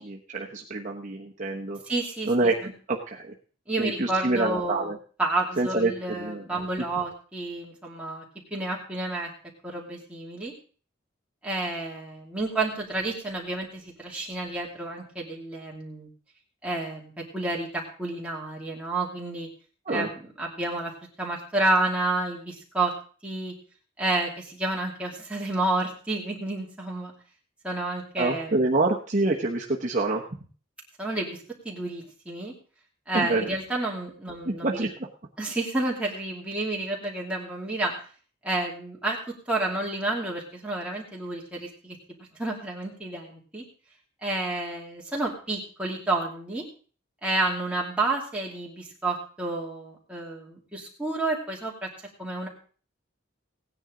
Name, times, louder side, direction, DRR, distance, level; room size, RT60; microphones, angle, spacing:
voice 1, 0.0-1.8 2.3-3.3 3.8-5.0 5.6-6.4 19.9-20.1 28.2-30.2 33.1-33.5 34.4-34.9, right 2 dB, 35° right, -1 dB, 1.0 m, -26 dB
voice 2, 1.9-2.3 2.6-2.7 3.7-4.9 5.2-8.2 8.5-9.3 9.6-10.5 11.4-16.1 16.6-19.5 19.9-20.9 21.2-22.9 23.2-23.6 24.0-27.1 27.6-28.7 31.0-32.5 33.1-34.8 35.4-37.9 38.4-43.7 44.2-46.6 47.2-51.9 52.2-52.5, right 2 dB, 5° right, -3 dB, 2.6 m, -30 dB
17.0 x 9.9 x 3.8 m, 0.41 s
head